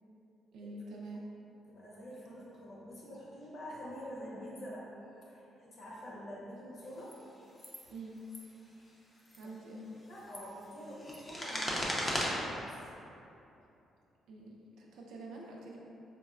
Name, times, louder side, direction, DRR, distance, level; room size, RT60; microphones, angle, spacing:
voice 1, 0.5-1.2 7.9-8.2 9.4-9.9 14.3-15.8, right 2 dB, 80° right, -2 dB, 0.5 m, -46 dB
voice 2, 1.7-7.2 8.6-9.0 10.1-12.8, equal, 60° left, -6 dB, 0.9 m, -46 dB
sound 1, 7.0-7.1 7.6-7.8 8.2-8.4 9.2-9.5 10.0-12.3, left 1 dB, 25° left, 0.6 m, -37 dB
4.4 x 2.1 x 2.4 m, 2.8 s
cardioid pair, 90°, 0 cm